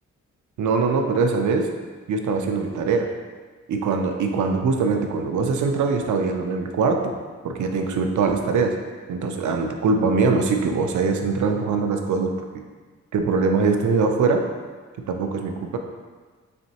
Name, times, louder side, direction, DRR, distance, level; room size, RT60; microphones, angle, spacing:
voice 1, 0.6-1.7 2.1-3.1 3.7-7.1 7.4-8.8 9.1-12.4 13.1-14.4 15.1-15.8, right 4 dB, 85° right, 4 dB, 0.5 m, -22 dB
4.2 x 3.0 x 2.8 m, 1.5 s
wide cardioid pair, 145°, 29 cm